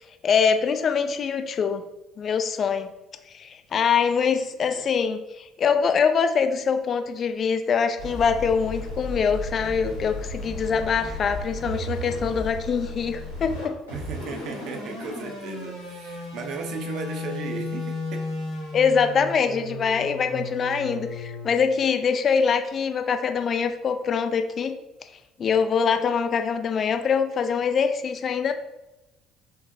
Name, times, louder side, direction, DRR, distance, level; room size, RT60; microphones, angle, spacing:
voice 1, 0.2-1.8 2.2-2.9 3.3-13.8 18.7-24.8 25.4-28.5, left 6 dB, 45° left, 8 dB, 0.3 m, -24 dB
sound 1, 8.0-21.5, left 1 dB, 85° left, 1.1 m, -34 dB
voice 2, 13.9-18.3, right 5 dB, 55° right, 3 dB, 0.5 m, -36 dB
6.1 x 2.1 x 2.6 m, 1.0 s
figure-of-eight pair, 55°, 0 cm